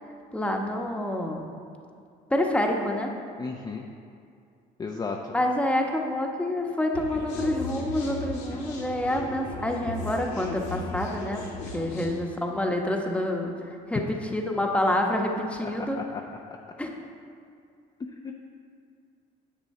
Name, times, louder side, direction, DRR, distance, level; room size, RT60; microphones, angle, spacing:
voice 1, 0.3-1.5 2.3-3.1 5.3-11.4 11.7-16.0 16.8-16.9, left 1 dB, 5° left, 1 dB, 1.1 m, -27 dB
voice 2, 3.4-3.8 4.8-5.3 11.9-12.0 15.1-15.2 15.6-15.7 16.0-16.2 18.2-18.3, left 4 dB, 25° left, 1 dB, 0.6 m, -34 dB
sound 1, 6.9-12.1, left 1 dB, 90° left, 1.8 m, -36 dB
10.0 x 7.7 x 4.3 m, 2.4 s
cardioid pair, 110°, 17 cm